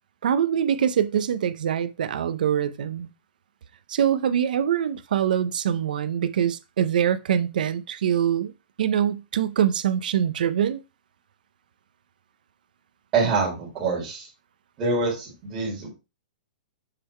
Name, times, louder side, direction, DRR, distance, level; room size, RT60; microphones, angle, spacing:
voice 1, 0.2-3.1 3.9-8.5 8.8-10.8, right 9 dB, 60° right, 0.6 m, -24 dB
voice 2, 13.1-14.3 14.8-15.9, right 4 dB, 15° right, 2.0 m, -25 dB
6.7 x 3.7 x 4.3 m
hypercardioid pair, 180°, 5 cm